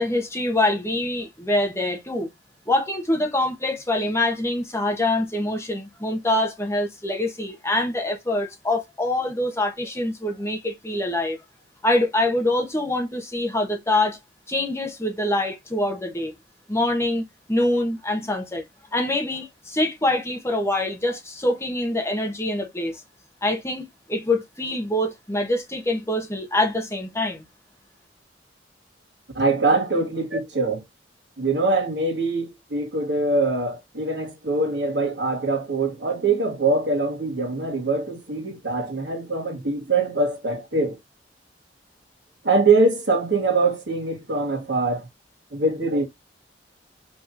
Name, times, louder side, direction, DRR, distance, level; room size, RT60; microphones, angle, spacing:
voice 1, 0.0-2.3 2.7-11.4 11.8-14.2 14.5-16.3 16.7-18.6 18.9-23.0 23.4-27.4, left 1 dB, 15° left, 1.1 m, -25 dB
voice 2, 29.3-30.8 31.4-41.0 42.4-45.1 45.5-46.1, right 3 dB, 70° right, 1.8 m, -23 dB
5.3 x 3.1 x 2.6 m
head